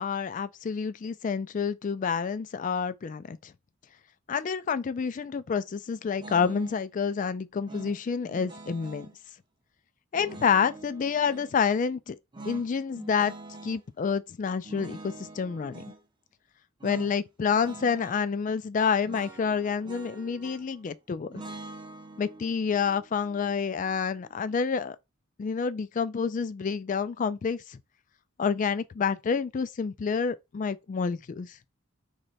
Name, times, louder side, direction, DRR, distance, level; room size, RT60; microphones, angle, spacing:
voice 1, 0.0-3.5 4.3-9.1 10.1-12.2 12.5-13.3 13.6-15.8 16.8-21.3 22.2-25.0 25.4-27.8 28.4-31.6, left 6 dB, 40° left, 0.3 m, -28 dB
sound 1, 6.2-6.9 7.7-9.1 10.1-11.5 12.3-13.8 14.6-16.0 16.8-17.2 17.4-18.2 19.1-20.8 21.3-24.4, right 2 dB, 20° right, 0.6 m, -45 dB
3.2 x 3.2 x 4.0 m
head